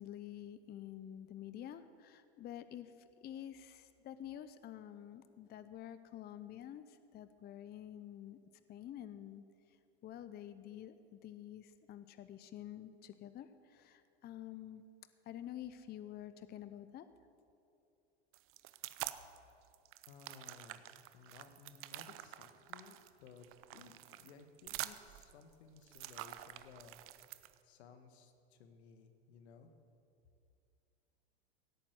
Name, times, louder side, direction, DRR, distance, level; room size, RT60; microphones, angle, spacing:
voice 1, 0.0-2.9 3.2-8.4 8.7-9.8 10.0-14.8 15.2-17.1, left 11 dB, 30° left, 12 dB, 0.7 m, -49 dB
sound 1, 18.3-19.4 19.7-27.6, right 15 dB, 40° right, 0.7 m, -47 dB
voice 2, 20.1-20.8 21.1-23.5 23.7-27.0 27.6-29.7, left 6 dB, 75° left, 7 dB, 1.7 m, -58 dB
17.0 x 8.7 x 8.1 m, 2.6 s
hypercardioid pair, 100°, 33 cm